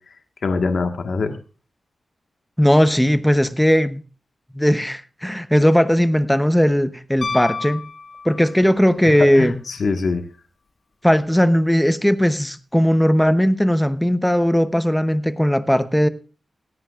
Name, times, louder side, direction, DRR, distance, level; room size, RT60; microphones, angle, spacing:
voice 1, 0.4-1.4 9.2-10.2, left 4 dB, 70° left, 5 dB, 1.5 m, -23 dB
voice 2, 2.6-4.0 4.5-7.9 8.2-9.6 11.0-16.1, equal, 5° left, 11 dB, 0.8 m, -17 dB
Piano, 7.2-8.8 11.1-11.2, left 4 dB, 50° left, 1.2 m, -30 dB
17.5 x 14.5 x 2.4 m, 0.35 s
wide cardioid pair, 140°, 0 cm